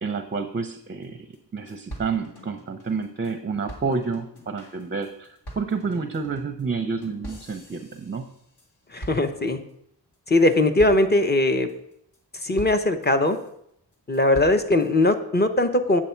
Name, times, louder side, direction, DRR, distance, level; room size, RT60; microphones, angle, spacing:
voice 1, 0.0-1.3 1.5-8.3, right 5 dB, 25° right, 8 dB, 0.5 m, -29 dB
sound 1, 1.0-1.1 1.3-1.4 1.7-3.3 3.7-8.7 9.0-9.7 10.1-10.4 10.8-11.3 11.7-12.2 12.6-13.5 13.9-14.9, right 1 dB, 65° left, 2.0 m, -43 dB
voice 2, 8.9-9.6 10.3-11.7 12.3-13.4 14.1-16.0, left 2 dB, 25° left, 7 dB, 0.8 m, -20 dB
8.3 x 7.4 x 4.4 m, 0.73 s
wide cardioid pair, 105°, 43 cm